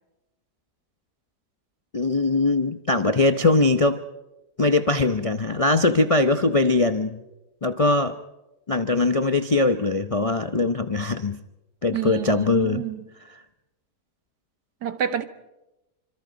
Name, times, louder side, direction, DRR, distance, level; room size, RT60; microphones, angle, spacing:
voice 1, 1.9-4.0 4.6-7.2 7.6-8.2 8.7-11.4 11.8-12.8, left 3 dB, 35° left, 0.6 m, -21 dB
voice 2, 11.9-13.0 14.8-15.2, right 10 dB, 90° right, 2.0 m, -28 dB
26.0 x 26.0 x 5.2 m
omnidirectional pair, 1.7 m